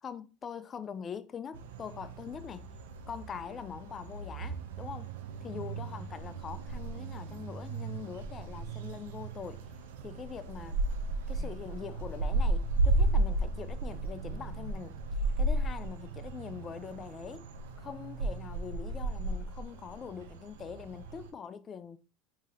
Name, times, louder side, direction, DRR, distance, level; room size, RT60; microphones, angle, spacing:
voice 1, 0.0-2.7 3.1-5.1 5.4-9.7 10.0-10.8 11.3-15.0 15.4-17.5 17.8-22.0, left 7 dB, 30° left, 0.4 m, -43 dB
sound 1, 1.5-21.3, right 2 dB, 80° right, 0.4 m, -34 dB
3.6 x 2.8 x 3.0 m
hypercardioid pair, 100°, 0 cm